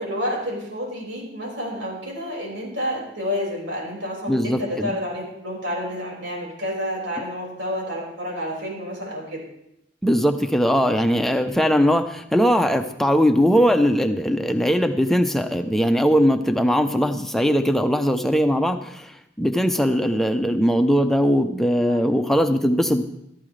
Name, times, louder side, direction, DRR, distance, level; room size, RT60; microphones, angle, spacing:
voice 1, 0.0-9.4 21.9-22.0, equal, 85° right, -3 dB, 5.5 m, -29 dB
voice 2, 4.3-4.9 10.0-23.0, equal, ahead, 6 dB, 0.7 m, -20 dB
15.0 x 14.0 x 3.3 m, 0.82 s
head